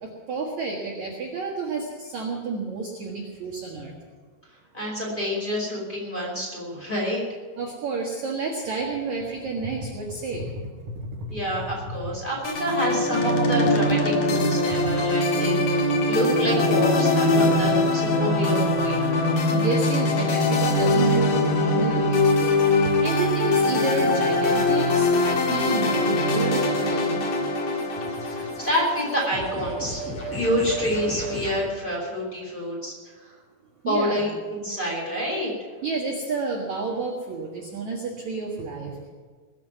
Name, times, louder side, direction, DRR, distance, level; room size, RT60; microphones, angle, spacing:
voice 1, 0.0-3.9 7.6-10.5 19.5-27.4 30.2-30.4 33.8-34.3 35.8-39.1, right 4 dB, 60° right, 0 dB, 2.0 m, -30 dB
voice 2, 4.7-7.2 11.3-19.1 21.0-21.1 28.3-32.9 33.8-35.5, equal, 10° left, -4 dB, 4.5 m, -28 dB
sound 1, 12.4-29.8, left 2 dB, 55° left, 2.8 m, -22 dB
sound 2, 16.1-22.1, left 3 dB, 85° left, 3.3 m, -28 dB
sound 3, 27.0-31.7, right 1 dB, 30° left, 5.3 m, -35 dB
20.5 x 7.5 x 9.3 m, 1.5 s
omnidirectional pair, 5.7 m